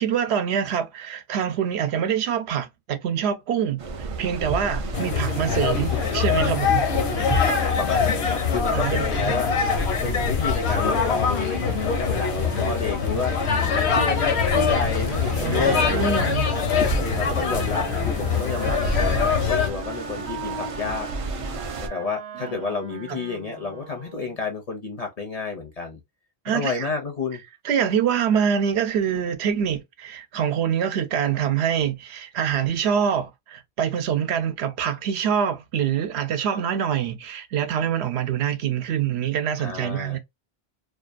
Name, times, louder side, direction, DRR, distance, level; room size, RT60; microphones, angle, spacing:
voice 1, 0.0-6.9 8.7-9.4 15.4-16.6 22.4-22.6 23.1-23.2 26.4-26.9 27.6-40.2, right 8 dB, 80° right, 0.8 m, -25 dB
sound 1, 3.8-21.9, right 3 dB, 60° right, 0.3 m, -33 dB
sound 2, 4.9-19.7, left 6 dB, 75° left, 0.9 m, -23 dB
voice 2, 7.1-16.3 16.7-21.1 21.8-26.0 26.5-27.4 39.6-40.2, left 4 dB, 50° left, 0.5 m, -31 dB
Wind instrument woodwind instrument, 17.1-24.4, right 4 dB, 40° right, 0.8 m, -39 dB
2.5 x 2.3 x 2.4 m
omnidirectional pair, 1.1 m